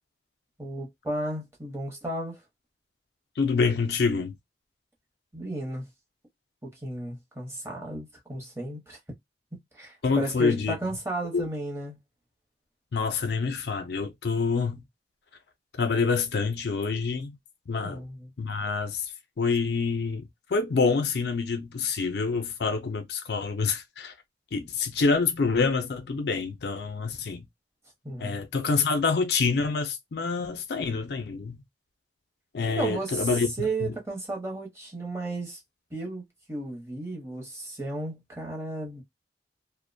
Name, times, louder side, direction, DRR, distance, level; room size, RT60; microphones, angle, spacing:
voice 1, 0.6-2.4 5.3-5.9 6.6-9.0 9.5-12.0 17.8-18.3 28.0-28.4 32.8-33.3 33.6-35.6 35.9-39.0, right 2 dB, 15° right, 0.8 m, -34 dB
voice 2, 3.4-4.3 10.0-10.7 11.3-11.4 12.9-14.8 15.8-17.4 17.7-18.0 18.4-19.1 19.4-24.1 24.5-27.5 28.2-31.6 32.5-33.9, left 4 dB, 65° left, 0.4 m, -27 dB
2.5 x 2.1 x 2.5 m
head